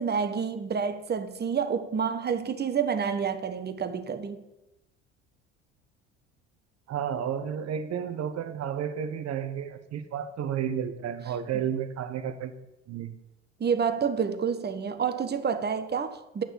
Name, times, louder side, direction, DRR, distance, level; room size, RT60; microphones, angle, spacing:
voice 1, 0.0-4.4 13.6-16.4, right 6 dB, 30° right, 1.3 m, -28 dB
voice 2, 6.9-12.5 12.9-13.1, right 8 dB, 45° right, 1.3 m, -32 dB
9.2 x 6.2 x 8.2 m
hypercardioid pair, 65°, 34 cm